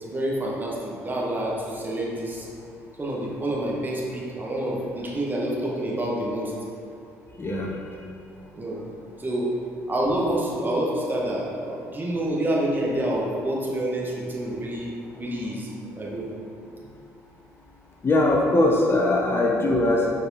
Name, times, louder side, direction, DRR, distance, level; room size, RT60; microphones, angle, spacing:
voice 1, 0.0-2.5 3.0-6.5 8.6-8.8 9.2-9.5 9.9-15.7 15.9-16.3, right 1 dB, 25° right, -4 dB, 1.7 m, -27 dB
voice 2, 7.4-7.7 18.0-20.1, left 2 dB, 30° left, -1 dB, 1.0 m, -21 dB
7.0 x 4.8 x 4.2 m, 2.4 s
hypercardioid pair, 55°, 8 cm